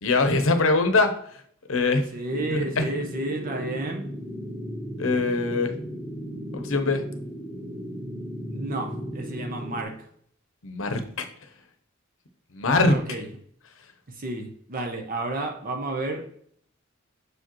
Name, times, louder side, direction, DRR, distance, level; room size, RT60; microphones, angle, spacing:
voice 1, 0.0-1.4 1.7-2.1 2.5-2.8 5.0-5.7 6.5-7.0 10.6-11.3 12.5-13.0, left 3 dB, 75° left, 7 dB, 0.8 m, -23 dB
voice 2, 2.1-4.1 8.5-9.9 12.9-13.2 14.2-16.2, right 2 dB, 45° right, 4 dB, 0.7 m, -31 dB
sound 1, 2.3-9.8, equal, 15° right, 1.4 m, -35 dB
6.5 x 4.9 x 3.0 m, 0.63 s
head